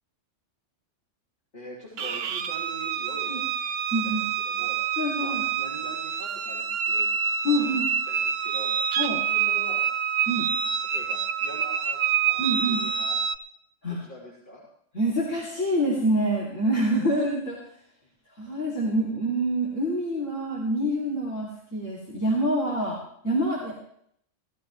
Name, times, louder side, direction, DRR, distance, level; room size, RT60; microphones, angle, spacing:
voice 1, 1.5-3.5 4.0-4.2 4.5-4.8 5.2-8.7 9.2-9.8 10.8-13.2 13.9-14.6, equal, 45° left, -9 dB, 3.8 m, -44 dB
sound 1, 2.0-13.4, right 8 dB, 60° right, 0.8 m, -27 dB
voice 2, 3.9-4.2 5.0-5.4 7.4-7.9 9.0-9.2 10.3-10.5 12.4-12.8 13.8-14.0 14.9-17.6 18.4-23.0 23.2-23.7, right 1 dB, 90° left, -7 dB, 3.4 m, -26 dB
17.5 x 13.5 x 3.2 m, 0.68 s
omnidirectional pair, 1.3 m